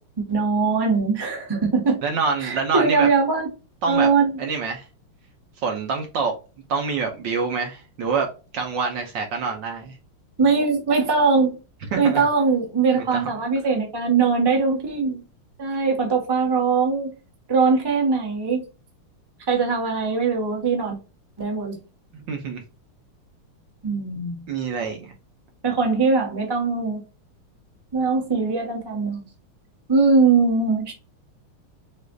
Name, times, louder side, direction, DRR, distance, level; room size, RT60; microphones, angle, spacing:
voice 1, 0.0-2.0 2.4-3.5 3.9-4.4 10.4-11.6 12.0-15.2 15.6-17.1 17.5-18.6 19.5-21.0 21.4-21.8 23.8-24.5 25.6-27.0 27.9-29.2 29.9-30.9, right 4 dB, 15° right, 0.9 m, -21 dB
voice 2, 2.0-3.1 3.8-4.1 4.4-4.8 5.6-6.3 6.7-8.3 8.5-10.0 11.9-12.2 13.0-13.3 22.1-22.6 24.5-25.1, right 5 dB, 65° right, 1.4 m, -26 dB
6.4 x 2.5 x 2.3 m
omnidirectional pair, 2.4 m